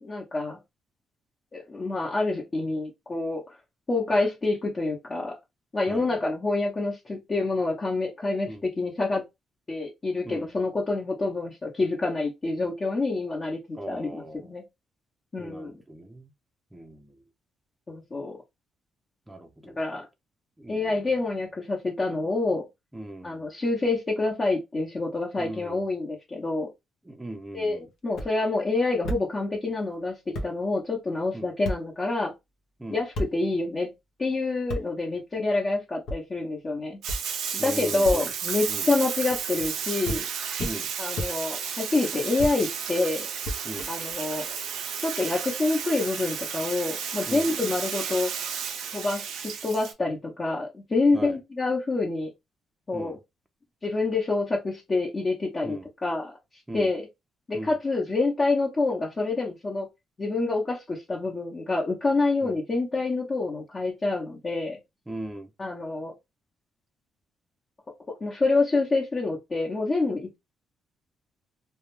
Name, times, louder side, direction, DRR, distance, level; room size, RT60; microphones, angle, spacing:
voice 1, 0.0-0.6 1.5-3.4 3.9-5.4 5.7-9.2 9.7-14.6 15.3-15.8 17.9-18.4 19.6-20.1 20.7-22.7 23.2-26.7 27.5-32.3 32.9-33.9 34.2-37.0 37.6-40.2 41.0-43.3 43.9-44.5 45.0-48.3 48.9-52.3 52.9-53.2 53.8-57.1 57.5-59.9 60.2-64.8 65.6-66.1 68.1-70.4, left 3 dB, 30° left, 0.8 m, -27 dB
voice 2, 5.9-6.2 8.5-8.6 10.2-10.5 13.7-14.5 15.4-16.3 16.7-17.2 19.3-19.8 20.6-20.9 22.9-23.4 25.4-25.8 27.1-27.9 31.3-31.5 32.8-33.0 37.6-38.3 38.7-38.9 40.6-40.9 43.6-43.9 47.3-47.5 51.1-51.4 52.9-53.2 55.6-55.9 56.7-56.9 57.5-57.8 62.4-62.5 65.1-65.5, right 1 dB, 10° right, 0.5 m, -39 dB
sound 1, 28.1-28.3 29.0-29.2 30.0-30.1 30.3-30.5 31.6-31.8 33.1-33.3 34.7-34.8 36.1-36.2 37.1-37.2 38.0-38.2 39.3-39.7 40.0-40.2 40.6-40.7 41.2-41.3 42.4-42.5 43.4-44.1, left 1 dB, 75° left, 0.6 m, -31 dB
Bathtub (filling or washing), 37.0-49.9, right 7 dB, 80° right, 0.5 m, -33 dB
2.2 x 2.1 x 3.0 m
cardioid pair, 90°, 0 cm